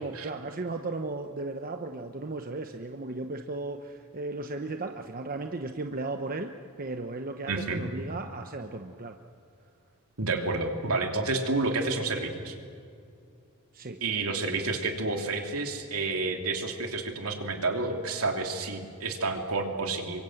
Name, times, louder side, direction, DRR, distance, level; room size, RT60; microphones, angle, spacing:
voice 1, 0.0-9.2 13.7-14.0, right 2 dB, 40° right, 5 dB, 1.0 m, -35 dB
voice 2, 7.5-7.8 10.2-12.5 14.0-20.2, right 3 dB, 75° right, 3 dB, 3.0 m, -30 dB
29.0 x 24.0 x 7.9 m, 2.4 s
head